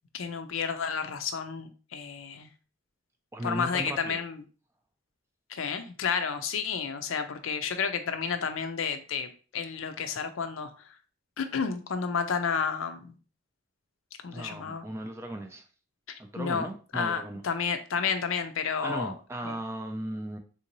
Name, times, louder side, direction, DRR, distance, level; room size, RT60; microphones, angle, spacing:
voice 1, 0.1-2.5 3.4-4.4 5.5-10.9 11.4-13.1 14.2-14.9 16.1-19.1 19.4-19.6, left 6 dB, 75° left, 8 dB, 0.5 m, -31 dB
voice 2, 3.3-4.2 14.3-15.6 16.2-17.4 18.8-20.4, right 1 dB, 15° right, 5 dB, 0.3 m, -36 dB
3.7 x 2.6 x 2.9 m, 0.37 s
head